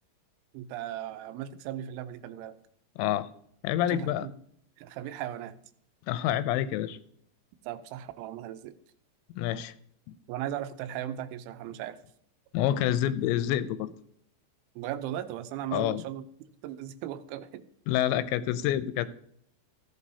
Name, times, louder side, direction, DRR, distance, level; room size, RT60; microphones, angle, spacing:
voice 1, 0.5-2.6 3.9-4.3 4.8-5.6 7.6-8.7 10.3-12.0 14.8-16.2 16.6-17.7, right 11 dB, 90° right, 11 dB, 3.1 m, -37 dB
voice 2, 3.0-3.3 3.6-4.3 6.1-7.0 9.4-9.7 10.1-10.2 12.5-13.9 15.7-16.0 17.9-19.1, left 12 dB, 85° left, 13 dB, 2.7 m, -27 dB
15.0 x 8.4 x 2.8 m, 0.66 s
omnidirectional pair, 5.3 m